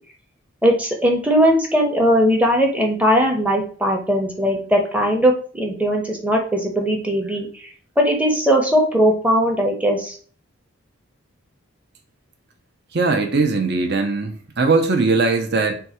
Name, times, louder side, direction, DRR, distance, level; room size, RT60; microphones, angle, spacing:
voice 1, 0.6-7.7 8.0-10.2, equal, 5° right, 0.7 m, -19 dB
voice 2, 12.9-15.8, right 3 dB, 50° right, 0.7 m, -20 dB
3.9 x 2.3 x 4.3 m
head